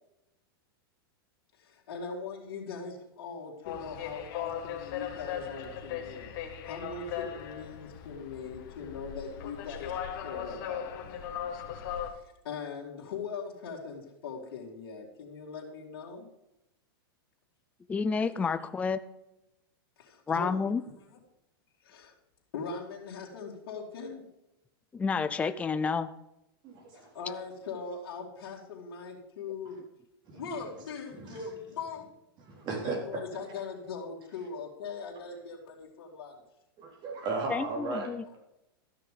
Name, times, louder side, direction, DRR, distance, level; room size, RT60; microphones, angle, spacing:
voice 1, 1.6-6.3 6.6-9.9 10.2-11.3 12.1-16.2 18.2-18.3 20.0-20.7 21.8-22.1 22.5-24.2 26.9-29.8 30.3-32.1 32.7-36.4, left 5 dB, 70° left, -3 dB, 2.9 m, -41 dB
sound 1, 3.6-12.1, left 9 dB, 55° left, 1.9 m, -38 dB
voice 2, 17.9-19.0 20.3-20.8 24.9-26.1 37.5-38.2, left 5 dB, 10° left, 11 dB, 0.4 m, -30 dB
voice 3, 26.6-27.1 30.3-30.4 31.1-31.4 32.4-33.0 36.8-38.1, right 3 dB, 35° right, 0 dB, 3.8 m, -35 dB
13.0 x 6.6 x 5.1 m, 0.88 s
hypercardioid pair, 135°, 13 cm